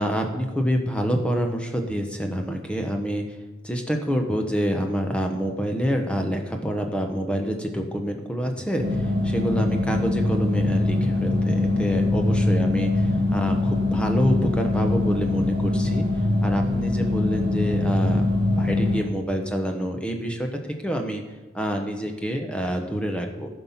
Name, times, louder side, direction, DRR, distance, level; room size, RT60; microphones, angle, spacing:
voice 1, 0.0-3.2 3.6-16.1 16.4-21.2 21.5-23.5, equal, 5° left, 3 dB, 1.0 m, -27 dB
sound 1, 8.8-19.0, left 2 dB, 55° right, 2.1 m, -23 dB
14.0 x 5.5 x 5.8 m, 1.1 s
head